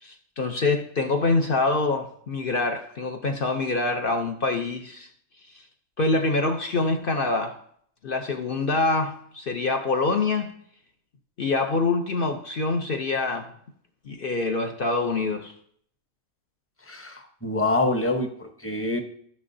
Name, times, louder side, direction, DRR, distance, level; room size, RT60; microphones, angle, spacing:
voice 1, 0.0-5.1 5.5-5.6 6.0-7.6 8.0-10.5 11.4-13.5 14.0-15.5, left 3 dB, 50° left, 5 dB, 0.7 m, -25 dB
voice 2, 16.8-19.0, left 2 dB, 10° left, 5 dB, 0.8 m, -26 dB
15.5 x 6.7 x 2.7 m, 0.63 s
omnidirectional pair, 1.5 m